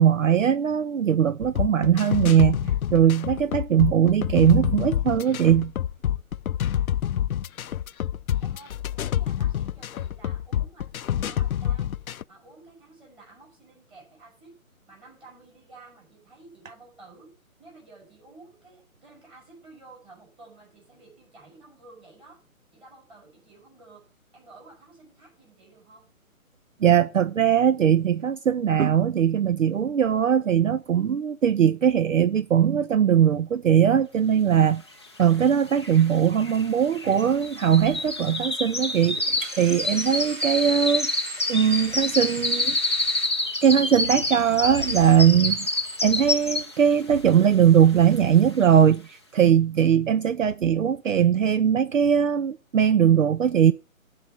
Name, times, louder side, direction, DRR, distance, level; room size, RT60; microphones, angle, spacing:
voice 1, 0.0-5.7 26.8-34.8 35.2-41.1 41.5-42.8 43.6-45.7 46.0-53.7, right 8 dB, 65° right, 0.7 m, -20 dB
sound 1, 1.4-12.2, left 11 dB, 75° left, 0.6 m, -27 dB
voice 2, 8.4-12.0 12.3-14.6 14.9-17.3 17.6-22.4 22.7-26.1, right 3 dB, 10° right, 5.6 m, -51 dB
sound 2, 35.2-35.3 35.5-46.9 47.3-47.6 48.1-48.2, left 2 dB, 20° left, 0.5 m, -28 dB
sound 3, 39.2-43.3 44.0-45.1, right 3 dB, 35° right, 2.1 m, -42 dB
12.5 x 4.8 x 8.3 m
hypercardioid pair, 160°, 43 cm